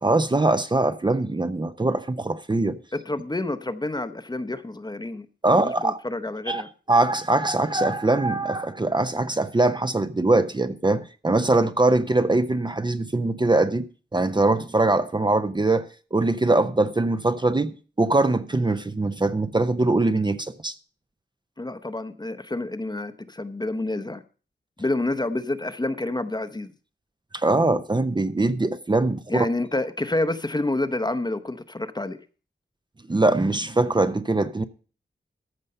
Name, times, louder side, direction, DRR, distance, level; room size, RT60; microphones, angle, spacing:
voice 1, 0.0-2.8 5.4-6.0 6.5-6.6 6.9-13.9 14.1-20.7 27.3-29.5 33.1-34.6, right 2 dB, 25° right, 0.6 m, -22 dB
voice 2, 2.9-5.3 5.5-6.7 21.6-24.2 24.8-26.7 29.3-32.2, left 2 dB, 20° left, 0.8 m, -28 dB
14.0 x 5.4 x 6.6 m
wide cardioid pair, 90°, 19 cm